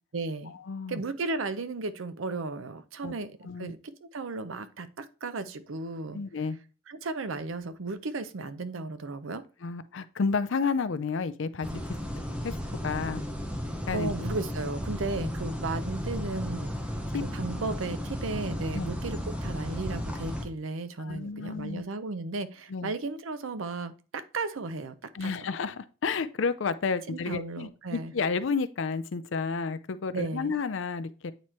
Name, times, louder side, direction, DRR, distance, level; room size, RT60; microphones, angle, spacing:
voice 1, 0.1-0.5 0.9-6.2 6.9-9.4 13.9-16.7 17.2-25.5 27.1-28.1 30.1-30.5, right 3 dB, 80° right, 0.6 m, -35 dB
voice 2, 0.7-1.0 3.0-3.1 3.4-3.7 6.1-6.6 9.6-11.8 12.4-12.6 12.8-13.2 13.9-14.1 17.1-17.2 18.7-18.9 21.0-21.8 22.7-22.9 25.1-31.3, left 5 dB, 70° left, 0.5 m, -31 dB
sound 1, 11.6-20.4, equal, 5° right, 0.7 m, -34 dB
9.0 x 3.0 x 4.3 m
head